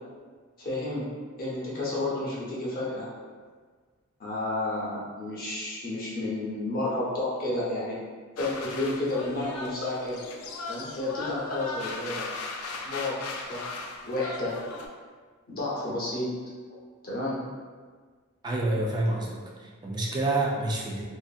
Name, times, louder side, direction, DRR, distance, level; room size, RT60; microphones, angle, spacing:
voice 1, 0.6-1.1 1.4-3.1 4.2-8.0 8.4-10.2 10.7-12.3 12.8-13.7 14.1-14.6 15.5-16.3 17.0-17.4, left 2 dB, 45° left, -6 dB, 0.8 m, -31 dB
sound 1, 8.4-14.9, left 3 dB, 90° left, 0.3 m, -37 dB
voice 2, 18.4-21.0, right 2 dB, 20° right, -3 dB, 0.3 m, -28 dB
2.7 x 2.4 x 2.4 m, 1.5 s
head